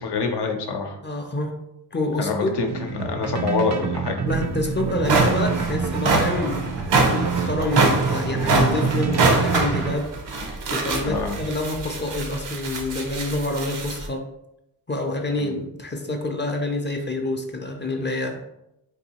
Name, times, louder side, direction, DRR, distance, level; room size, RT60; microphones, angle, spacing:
voice 1, 0.0-1.0 2.2-4.2 11.0-11.4 15.4-15.5, left 4 dB, 75° left, 3 dB, 0.7 m, -26 dB
voice 2, 1.0-1.6 1.9-2.5 4.3-6.8 7.1-14.3 14.9-18.4, left 2 dB, 25° left, 3 dB, 0.5 m, -27 dB
sound 1, 2.7-10.0, right 6 dB, 45° right, 0.4 m, -28 dB
sound 2, 4.3-4.4 4.8-14.1, right 3 dB, 85° right, 0.7 m, -24 dB
4.0 x 2.6 x 2.8 m, 0.83 s
wide cardioid pair, 85°, 41 cm